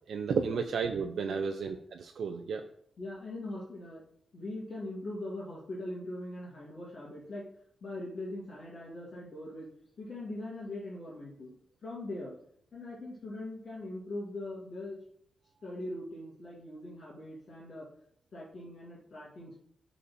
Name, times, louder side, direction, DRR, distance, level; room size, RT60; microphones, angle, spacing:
voice 1, 0.1-2.6, right 5 dB, 75° right, 4 dB, 0.6 m, -32 dB
voice 2, 3.0-4.0 4.3-7.5 7.8-9.7 10.0-11.5 11.8-12.3 12.7-15.0 15.6-17.9 18.3-19.6, left 1 dB, 50° left, -6 dB, 2.6 m, -41 dB
12.5 x 4.2 x 4.3 m, 0.67 s
wide cardioid pair, 145°, 0 cm